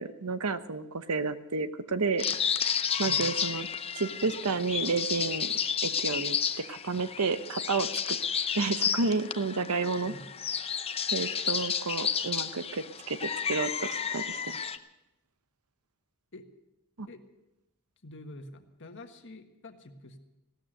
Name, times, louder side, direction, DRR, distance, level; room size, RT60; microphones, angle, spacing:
voice 1, 0.0-2.2 3.0-3.7 3.9-5.5 5.8-6.4 6.7-8.2 8.5-10.1 11.1-14.5 17.0-17.1, right 4 dB, 85° right, 11 dB, 0.9 m, -31 dB
sound 1, 2.2-14.8, left 7 dB, 25° left, 0.6 m, -31 dB
voice 2, 18.0-20.2, left 1 dB, 55° left, 6 dB, 1.5 m, -47 dB
16.5 x 13.0 x 6.5 m, 0.94 s
head